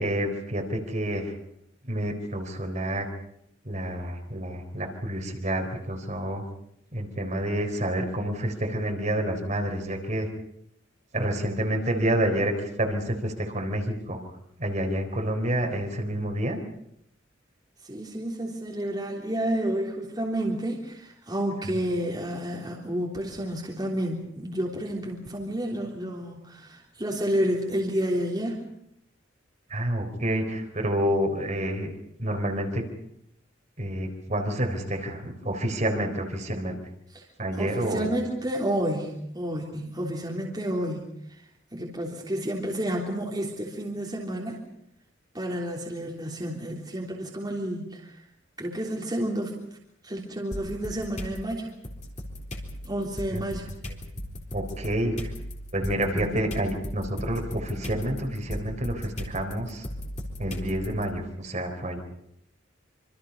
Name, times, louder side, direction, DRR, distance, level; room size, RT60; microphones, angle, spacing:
voice 1, 0.0-1.3 1.9-3.1 3.7-6.4 6.9-10.3 11.1-12.5 12.8-14.2 14.6-16.6 21.6-21.8 29.7-31.9 32.2-32.8 33.8-36.8 37.4-38.1 53.3-53.4 54.5-55.3 55.7-59.9 60.4-62.0, right 1 dB, 35° right, 3 dB, 4.1 m, -28 dB
voice 2, 17.8-28.6 37.1-37.2 37.6-41.1 41.7-44.6 45.3-48.1 48.6-49.6 50.0-51.7 52.8-53.7 56.1-56.5, right 1 dB, 20° right, -3 dB, 3.4 m, -30 dB
sound 1, 50.5-51.4 51.8-61.0, equal, 35° left, 3.9 m, -37 dB
26.5 x 25.5 x 5.5 m, 0.73 s
head